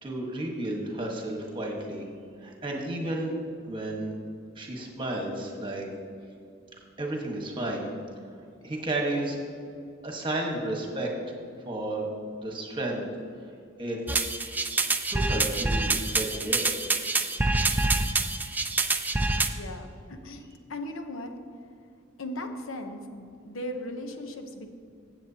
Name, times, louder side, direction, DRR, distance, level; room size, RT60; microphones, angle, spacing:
voice 1, 0.0-2.0 2.4-3.3 3.7-4.1 4.6-5.9 7.0-7.9 8.6-9.4 10.0-11.1 11.6-12.1 12.4-13.0 13.8-14.0 15.1-16.7, right 1 dB, 25° right, 0 dB, 1.4 m, -32 dB
sound 1, 14.1-19.5, right 3 dB, 10° right, 0.4 m, -26 dB
voice 2, 19.5-21.3 22.2-24.7, left 1 dB, 80° left, 5 dB, 0.8 m, -38 dB
15.0 x 7.8 x 2.8 m, 2.4 s
head